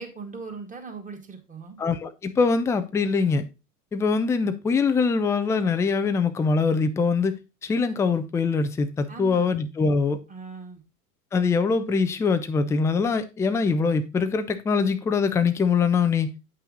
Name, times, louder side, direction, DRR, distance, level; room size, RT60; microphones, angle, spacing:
voice 1, 0.0-1.8 9.1-9.5 10.3-10.8, right 4 dB, 15° right, 2.1 m, -39 dB
voice 2, 1.8-3.5 3.9-10.2 11.3-16.3, left 5 dB, 5° left, 0.4 m, -23 dB
8.3 x 5.7 x 3.9 m
hypercardioid pair, 95°, 47 cm